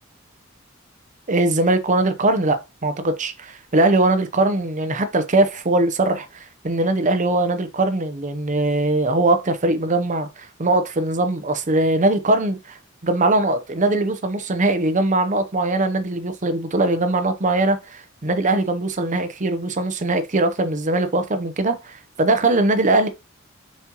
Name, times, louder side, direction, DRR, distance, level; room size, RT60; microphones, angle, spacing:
voice 1, 1.3-23.1, right 2 dB, 40° right, 0.8 m, -21 dB
7.2 x 4.3 x 3.0 m
head